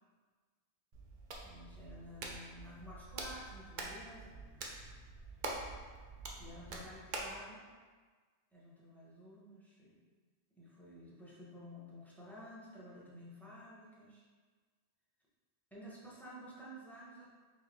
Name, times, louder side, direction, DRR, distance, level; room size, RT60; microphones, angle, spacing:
Hands, 0.9-7.4, right 3 dB, 55° right, 0.6 m, -45 dB
voice 1, 1.4-4.6 6.4-7.6 8.5-10.0 10.5-14.2 15.7-17.3, equal, ahead, -7 dB, 0.7 m, -52 dB
3.6 x 2.8 x 3.4 m, 1.5 s
omnidirectional pair, 1.1 m